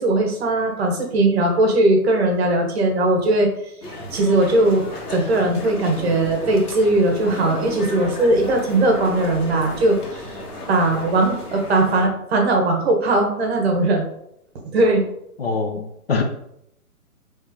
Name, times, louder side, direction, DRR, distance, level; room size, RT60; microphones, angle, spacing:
voice 1, 0.0-3.5 4.1-4.9 5.1-10.4 10.7-14.1 14.7-15.0, right 2 dB, 45° right, 2 dB, 1.0 m, -19 dB
sound 1, 3.8-12.1, left 1 dB, 80° left, 1.4 m, -33 dB
voice 2, 15.4-16.2, left 4 dB, 45° left, 3 dB, 0.4 m, -24 dB
3.2 x 3.0 x 3.5 m, 0.76 s
hypercardioid pair, 155°, 45 cm